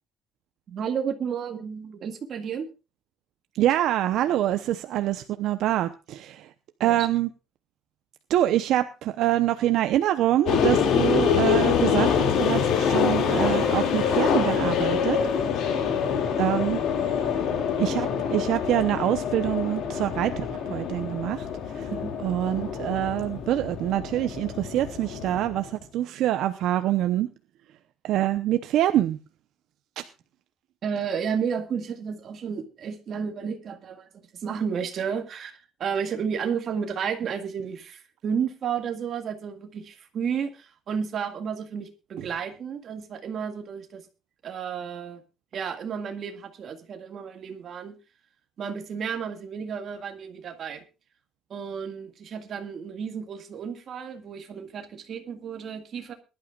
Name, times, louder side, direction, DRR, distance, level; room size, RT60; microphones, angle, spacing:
voice 1, 0.7-2.7 6.8-7.1 21.9-22.1 30.8-44.1 44.4-45.2 45.5-48.0 48.6-50.8 51.5-56.1, right 7 dB, 40° right, 6 dB, 1.9 m, -32 dB
voice 2, 3.6-6.4 6.8-7.3 8.3-15.2 16.4-16.8 17.8-21.5 21.7-21.9 22.2-27.3 28.0-29.2 30.0-30.1, right 13 dB, 65° right, 9 dB, 0.8 m, -25 dB
sound 1, 10.5-25.7, left 7 dB, 55° left, 2.4 m, -25 dB
22.0 x 11.5 x 2.4 m, 0.29 s
cardioid pair, 165°, 0 cm